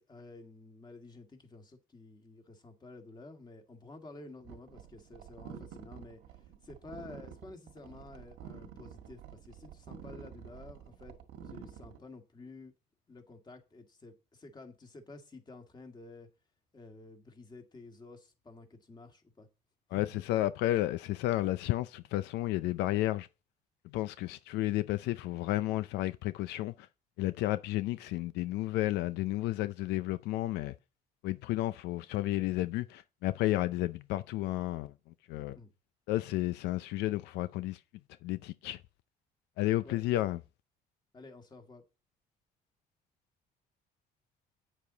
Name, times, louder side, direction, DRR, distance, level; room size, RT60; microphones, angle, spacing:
voice 1, 0.0-6.2 6.6-11.1 11.5-12.7 13.1-16.3 16.7-19.5 19.9-20.2 35.6-35.7 39.8-40.0 41.1-41.8, left 3 dB, 25° left, 2.1 m, -51 dB
sound 1, 4.4-12.0, right 8 dB, 80° right, 1.7 m, -49 dB
voice 2, 19.9-23.3 23.8-26.9 27.2-30.7 31.2-35.6 36.1-37.8 38.2-38.8 39.6-40.4, left 16 dB, 90° left, 0.5 m, -32 dB
8.8 x 7.4 x 3.9 m
cardioid pair, 110°, 17 cm